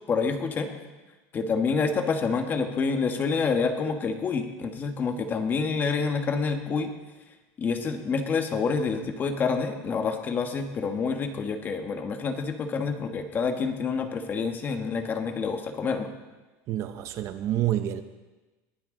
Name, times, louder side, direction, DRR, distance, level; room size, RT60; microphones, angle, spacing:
voice 1, 0.1-0.7 1.3-6.9 7.6-16.1, left 5 dB, 25° left, 6 dB, 1.4 m, -27 dB
voice 2, 16.7-18.0, right 12 dB, 40° right, 10 dB, 0.7 m, -28 dB
21.5 x 15.0 x 3.8 m, 1.2 s
cardioid pair, 165°, 8 cm